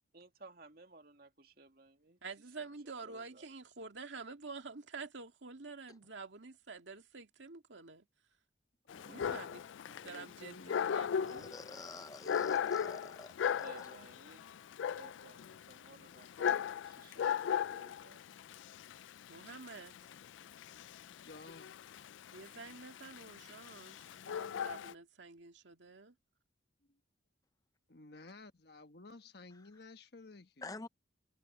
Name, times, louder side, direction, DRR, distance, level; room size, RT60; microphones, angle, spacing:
voice 1, 0.1-2.2 2.6-2.7 3.0-3.5 9.1-9.3 13.6-14.5 14.9-18.2, right 3 dB, 50° right, 2.2 m, -58 dB
voice 2, 2.2-8.1 9.1-9.6 10.0-11.5 19.3-19.9 22.3-24.0 24.3-26.1, right 4 dB, 75° right, 2.1 m, -48 dB
voice 3, 8.8-11.0 20.0-21.7 27.9-30.8, left 3 dB, 55° left, 1.3 m, -55 dB
Dog, 8.9-24.9, left 8 dB, 80° left, 0.3 m, -38 dB
voice 4, 11.2-13.9 30.6-30.9, left 3 dB, 20° left, 0.5 m, -48 dB
head